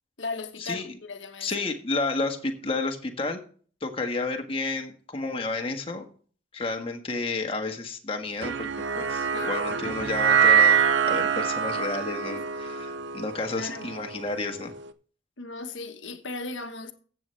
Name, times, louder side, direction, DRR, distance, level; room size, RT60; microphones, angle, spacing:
voice 1, 0.2-1.5 9.3-9.6 12.3-12.4 13.6-13.9 15.4-16.9, left 3 dB, 70° left, 1.3 m, -37 dB
voice 2, 1.4-3.4 3.8-6.0 6.5-8.7 8.9-14.7, left 3 dB, 30° left, 1.5 m, -31 dB
sound 1, 8.4-14.8, right 7 dB, 65° right, 0.7 m, -24 dB
15.0 x 7.9 x 3.3 m
head